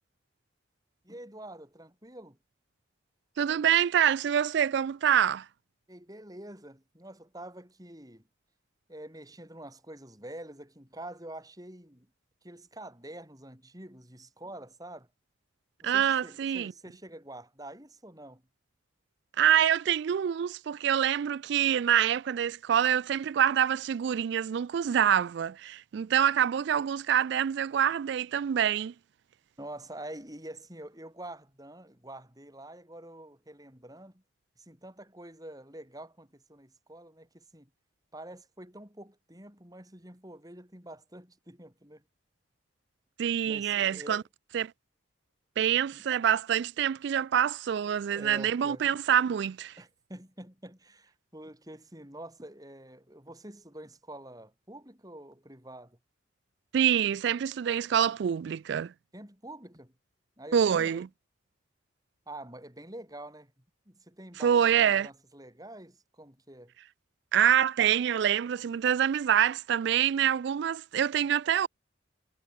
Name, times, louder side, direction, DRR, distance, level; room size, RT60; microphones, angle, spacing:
voice 1, 1.0-2.4 5.9-8.2 8.9-12.1 12.4-15.1 15.8-18.4 29.6-34.2 34.6-37.7 38.1-42.0 43.4-44.2 45.9-46.1 47.9-48.9 49.8-56.0 59.1-59.9 60.4-61.0 62.3-63.5 63.9-66.7, right 1 dB, 20° right, 6.1 m, -46 dB
voice 2, 3.4-5.5 15.8-16.7 19.4-28.9 43.2-44.2 44.5-44.7 45.6-49.8 56.7-58.9 60.5-61.1 64.4-65.1 67.3-71.7, right 9 dB, 55° right, 0.3 m, -26 dB
head